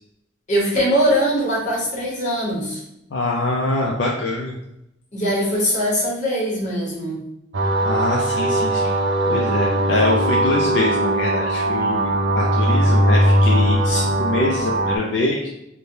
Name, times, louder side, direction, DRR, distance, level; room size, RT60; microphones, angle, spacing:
voice 1, 0.5-2.8 5.1-7.2, equal, 40° left, -4 dB, 1.0 m, -21 dB
voice 2, 3.1-4.5 7.9-8.9 9.3-12.1 12.4-15.5, left 2 dB, 65° left, -1 dB, 0.4 m, -24 dB
sound 1, 7.5-15.0, right 1 dB, 70° right, 0.5 m, -19 dB
3.2 x 2.1 x 2.7 m, 0.83 s
head